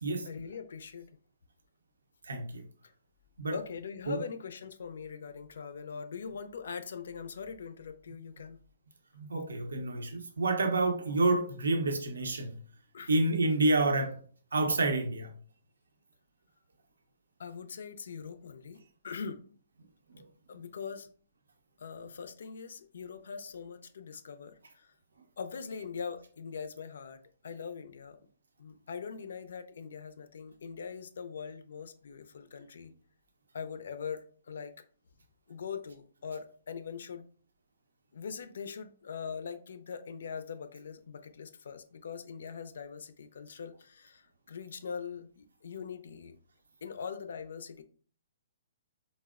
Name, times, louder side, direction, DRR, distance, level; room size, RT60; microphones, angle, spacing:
voice 1, 0.2-1.1 2.8-2.9 3.5-8.6 12.9-13.1 17.4-19.4 20.5-21.1 21.8-24.9 25.4-28.2 28.6-32.9 33.5-34.7 35.5-37.3 38.1-46.4 46.8-47.8, left 6 dB, 65° left, 0.4 m, -42 dB
voice 2, 2.2-2.6 3.4-3.6 4.1-4.2 9.2-12.6 13.1-14.2 14.5-15.3 20.1-20.3, right 2 dB, 80° right, 0.5 m, -29 dB
3.8 x 2.0 x 2.3 m
hypercardioid pair, 130°, 0 cm